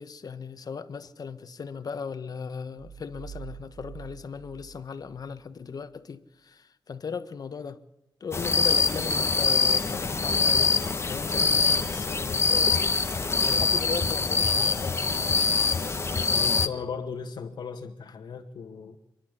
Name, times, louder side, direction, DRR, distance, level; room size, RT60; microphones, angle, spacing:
voice 1, 0.0-6.2 6.5-7.8 8.2-12.7 13.4-15.0, left 6 dB, 60° left, 1.5 m, -37 dB
sound 1, 2.8-5.4, right 8 dB, 30° right, 2.7 m, -45 dB
sound 2, 8.3-16.7, left 4 dB, 35° left, 1.4 m, -24 dB
voice 2, 16.3-19.0, left 6 dB, 75° left, 1.8 m, -37 dB
29.0 x 11.5 x 8.2 m
cardioid pair, 85°, 7 cm